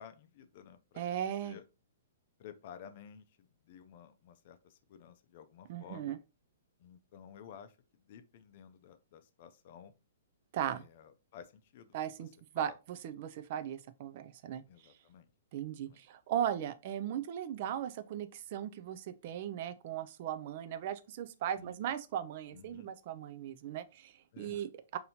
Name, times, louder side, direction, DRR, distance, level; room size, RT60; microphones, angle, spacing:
voice 1, 0.0-1.0 1.4-1.6 2.4-6.1 6.8-9.9 10.7-12.0 12.5-12.8 14.7-15.3 15.8-16.0 21.6-21.8 22.5-22.9 24.3-24.7, left 8 dB, 50° left, 0.4 m, -53 dB
voice 2, 1.0-1.6 5.7-6.2 10.5-10.8 11.9-12.3 12.5-14.6 15.5-25.0, right 10 dB, 50° right, 0.3 m, -37 dB
4.1 x 2.7 x 2.7 m
hypercardioid pair, 145°, 0 cm